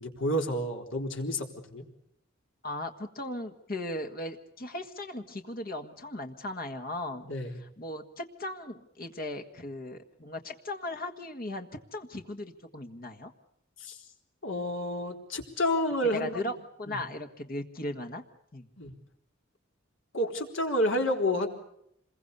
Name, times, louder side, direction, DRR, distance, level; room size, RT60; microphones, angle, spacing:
voice 1, 0.0-1.8 7.3-7.6 13.8-14.0 14.4-16.4 16.9-17.0 18.8-18.9 20.1-21.5, left 1 dB, 75° left, 3 dB, 4.1 m, -29 dB
voice 2, 2.6-7.3 7.6-13.3 16.1-16.5 16.8-18.2 18.5-18.7, left 1 dB, 50° left, 5 dB, 1.7 m, -37 dB
27.5 x 22.0 x 6.9 m, 0.74 s
head